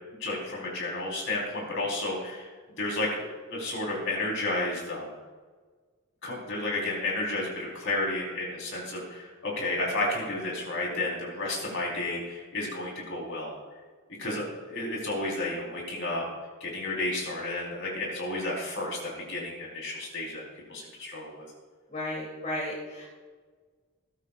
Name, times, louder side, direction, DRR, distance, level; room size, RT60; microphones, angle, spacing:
voice 1, 0.2-2.5 2.8-5.1 6.2-13.6 14.2-16.2 16.6-19.0 19.3-20.4 20.7-21.4, left 2 dB, 55° left, -3 dB, 4.2 m, -32 dB
voice 2, 21.9-23.1, left 1 dB, 35° left, -5 dB, 2.9 m, -34 dB
19.5 x 13.5 x 2.5 m, 1.4 s
head